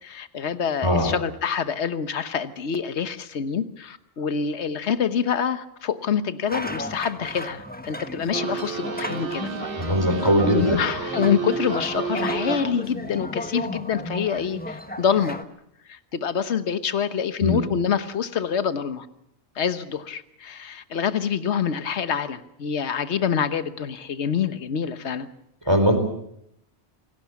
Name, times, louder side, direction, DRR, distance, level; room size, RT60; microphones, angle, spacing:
voice 1, 0.0-9.5 9.8-9.9 10.5-15.4 15.9-19.1 19.5-25.3, left 7 dB, 75° left, 11 dB, 1.4 m, -26 dB
voice 2, 0.8-1.1 9.8-10.8 17.4-17.6 25.7-26.0, equal, 20° right, 7 dB, 4.1 m, -20 dB
sound 1, 6.5-15.4, left 1 dB, 10° left, 1.2 m, -34 dB
sound 2, 8.3-12.9, right 5 dB, 55° right, 1.4 m, -31 dB
27.0 x 18.5 x 7.2 m, 0.76 s
omnidirectional pair, 1.2 m